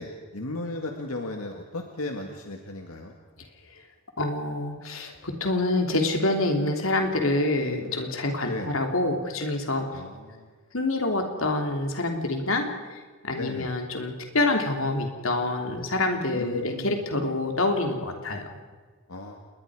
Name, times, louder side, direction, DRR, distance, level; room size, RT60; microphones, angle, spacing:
voice 1, 0.0-3.2 7.8-8.1 8.5-8.7 9.9-10.5 13.3-13.7 16.3-17.0 19.1-19.4, left 2 dB, 90° left, 3 dB, 2.0 m, -36 dB
voice 2, 4.2-9.9 10.7-12.7 13.2-18.5, left 2 dB, 65° left, 3 dB, 3.1 m, -26 dB
28.0 x 21.5 x 5.0 m, 1.4 s
head